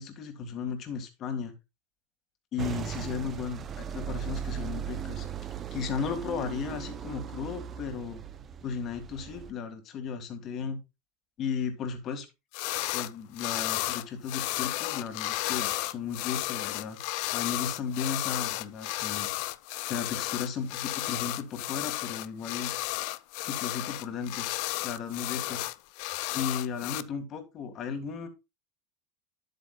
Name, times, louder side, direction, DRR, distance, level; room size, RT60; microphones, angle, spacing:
voice 1, 0.0-1.5 2.5-5.3 5.7-8.2 8.6-10.8 11.4-12.3 12.9-17.0 17.3-19.3 19.9-22.7 23.5-24.5 24.8-25.6 26.3-28.3, left 6 dB, 40° left, 7 dB, 1.9 m, -35 dB
sound 1, 2.6-9.5, right 8 dB, 30° right, 0.6 m, -37 dB
sound 2, 12.5-13.1 13.4-27.0, left 19 dB, 60° left, 0.4 m, -33 dB
10.5 x 8.2 x 2.3 m, 0.24 s
supercardioid pair, 140°, 0 cm